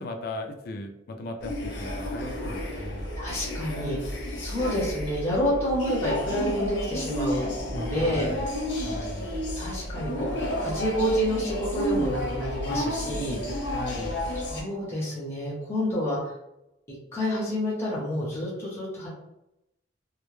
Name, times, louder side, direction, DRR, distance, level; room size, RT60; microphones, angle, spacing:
voice 1, 0.0-3.1 8.0-8.4 8.8-9.3 13.7-14.2, left 2 dB, 55° left, 4 dB, 0.3 m, -37 dB
sound 1, 1.4-14.6, equal, 80° left, 0.7 m, -31 dB
voice 2, 3.2-4.0 4.4-7.4 7.7-8.3 9.6-10.3 10.6-13.4 14.5-16.3 16.9-19.1, equal, 15° left, -5 dB, 0.6 m, -28 dB
2.1 x 2.0 x 3.0 m, 0.88 s
head